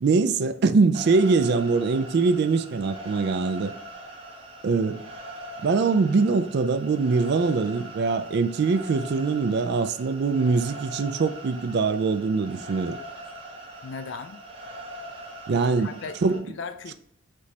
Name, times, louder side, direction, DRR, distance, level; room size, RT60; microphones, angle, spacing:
voice 1, 0.0-3.7 4.6-5.0 5.6-13.0 15.5-15.9 16.2-16.5, right 4 dB, 50° right, 0.3 m, -23 dB
sound 1, 0.9-16.4, right 1 dB, 25° right, 0.8 m, -41 dB
voice 2, 13.8-14.4 15.5-16.9, left 5 dB, 55° left, 0.4 m, -38 dB
5.1 x 2.8 x 3.2 m
head